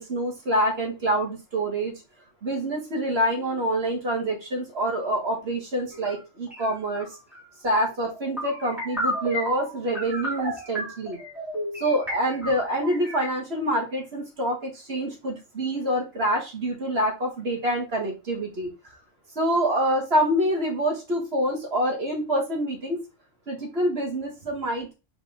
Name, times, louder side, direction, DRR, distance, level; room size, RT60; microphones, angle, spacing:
voice 1, 0.0-1.9 2.4-7.1 7.6-11.2 11.8-19.0 19.4-23.0 23.5-24.9, right 1 dB, 50° right, 1 dB, 2.2 m, -26 dB
sound 1, 5.9-6.2 6.5-13.3, equal, ahead, 3.4 m, -32 dB
5.2 x 5.1 x 3.7 m, 0.27 s
omnidirectional pair, 1.3 m